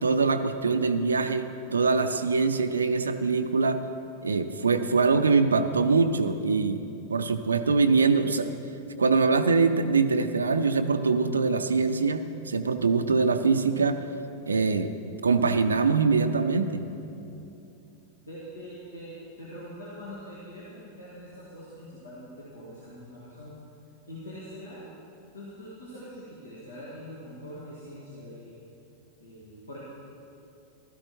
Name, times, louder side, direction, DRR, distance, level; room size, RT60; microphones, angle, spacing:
voice 1, 0.0-3.8 4.2-6.8 7.1-8.5 9.0-14.0 14.5-14.9 15.2-16.8, right 4 dB, 75° right, 9 dB, 0.4 m, -23 dB
voice 2, 18.3-23.5 24.1-24.9 25.3-28.6 29.2-29.8, equal, 75° left, -7 dB, 1.9 m, -43 dB
16.0 x 12.5 x 3.1 m, 2.8 s
figure-of-eight pair, 90°, 0 cm